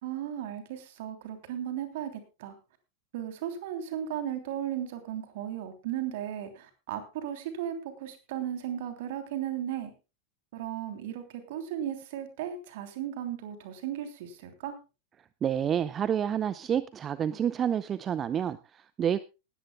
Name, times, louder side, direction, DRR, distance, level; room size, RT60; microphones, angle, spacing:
voice 1, 0.0-2.5 3.1-9.9 10.5-14.8, right 10 dB, 50° right, 8 dB, 3.1 m, -36 dB
voice 2, 15.4-19.2, right 9 dB, 25° right, 17 dB, 0.6 m, -29 dB
19.0 x 14.5 x 2.2 m, 0.29 s
figure-of-eight pair, 90°, 0 cm